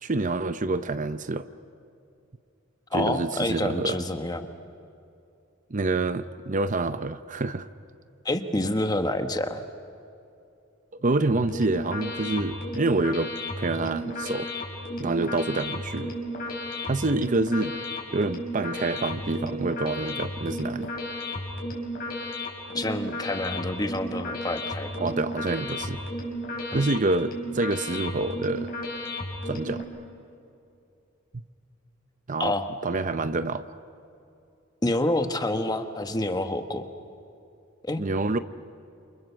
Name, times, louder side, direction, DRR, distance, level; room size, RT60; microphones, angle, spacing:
voice 1, 0.0-1.5 2.9-4.0 5.7-7.7 11.0-14.5 15.0-16.1 16.8-17.8 18.1-20.9 25.0-26.0 26.7-28.7 29.5-29.8 31.3-31.4 32.3-32.5 32.8-33.6 38.0-38.4, right 2 dB, 40° right, 11 dB, 0.7 m, -27 dB
voice 2, 2.9-4.5 8.2-9.6 22.7-25.1 26.7-26.8 32.4-32.7 34.8-36.9 37.8-38.0, left 1 dB, 20° left, 7 dB, 1.4 m, -28 dB
sound 1, 11.3-29.8, left 1 dB, 50° left, 5.6 m, -34 dB
29.0 x 28.0 x 7.0 m, 2.6 s
head